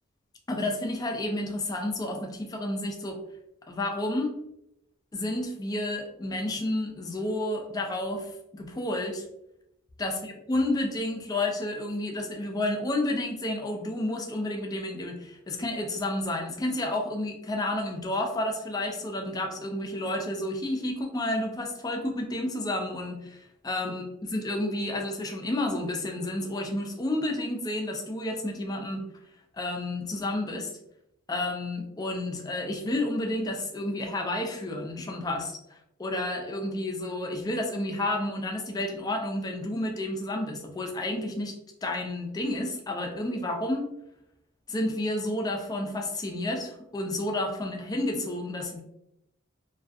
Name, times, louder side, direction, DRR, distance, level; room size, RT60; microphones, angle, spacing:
voice 1, 0.5-3.2 3.7-4.3 5.1-9.2 10.0-29.1 29.5-30.7 31.3-41.5 41.8-43.9 44.7-48.8, left 1 dB, 20° left, 3 dB, 0.3 m, -31 dB
2.4 x 2.3 x 2.4 m, 0.83 s
head